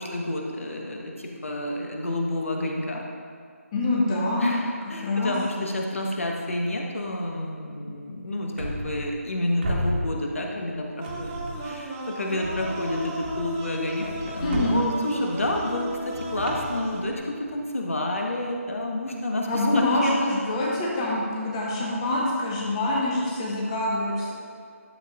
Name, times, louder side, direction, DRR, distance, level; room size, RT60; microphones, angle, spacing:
voice 1, 0.0-3.0 4.4-20.3, left 1 dB, 60° left, 0 dB, 1.3 m, -29 dB
voice 2, 3.7-4.5 5.0-5.3 14.4-14.9 19.5-24.3, left 1 dB, 20° left, -5 dB, 1.2 m, -25 dB
sound 1, 8.6-9.3 9.6-10.7 11.0-11.9 12.4-17.5, equal, 45° right, 1.4 m, -34 dB
sound 2, 11.0-17.0, right 2 dB, 10° right, 0.4 m, -35 dB
11.5 x 7.3 x 2.4 m, 2.2 s
figure-of-eight pair, 150°, 8 cm